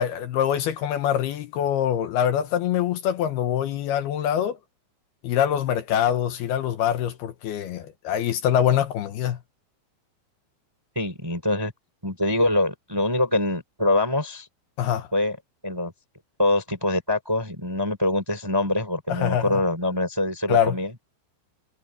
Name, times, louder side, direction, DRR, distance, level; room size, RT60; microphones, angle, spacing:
voice 1, 0.0-4.6 5.2-9.4 14.8-15.1 19.1-19.6 20.5-20.8, left 10 dB, 70° left, 2.7 m, -24 dB
voice 2, 11.0-11.7 12.0-14.5 15.1-15.4 15.6-15.9 16.4-20.9, left 1 dB, 5° right, 3.5 m, -24 dB
omnidirectional pair, 5.2 m